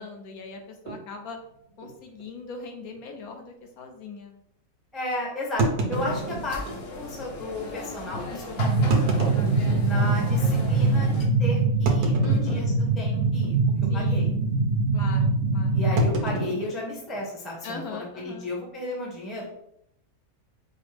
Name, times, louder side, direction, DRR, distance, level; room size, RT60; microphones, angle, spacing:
voice 1, 0.0-1.4 1.8-4.3 12.2-12.7 13.9-14.3 14.9-15.8 17.6-18.5, left 4 dB, 75° left, 4 dB, 1.1 m, -40 dB
sound 1, 0.9-1.0 1.8-1.9 2.2-2.3 2.9-3.0 5.6-6.8 7.6-7.7 8.7-10.2 10.7-10.8 11.9-12.9 13.2-13.6 13.8-14.2 16.0-17.6, right 2 dB, 90° right, 1.3 m, -29 dB
voice 2, 4.9-9.3 9.8-13.6 13.9-14.3 15.7-19.4, left 1 dB, ahead, -3 dB, 0.5 m, -34 dB
sound 2, 5.9-11.3, left 2 dB, 55° left, 0.7 m, -37 dB
sound 3, 8.6-16.1, right 3 dB, 65° right, 0.7 m, -23 dB
5.1 x 2.0 x 3.2 m, 0.74 s
omnidirectional pair, 1.6 m